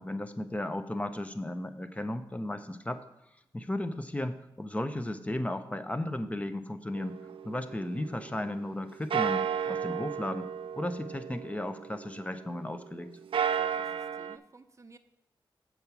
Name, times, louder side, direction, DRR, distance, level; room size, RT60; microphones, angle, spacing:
voice 1, 0.0-3.0 3.5-7.2 7.4-10.5 10.8-13.1, left 1 dB, 15° left, 9 dB, 0.6 m, -35 dB
sound 1, 7.0-8.7 9.1-12.6 13.1-14.4, right 8 dB, 80° right, 0.4 m, -34 dB
voice 2, 13.5-15.0, right 3 dB, 35° right, 9 dB, 0.6 m, -54 dB
7.3 x 4.7 x 6.7 m, 0.83 s
wide cardioid pair, 80°, 9 cm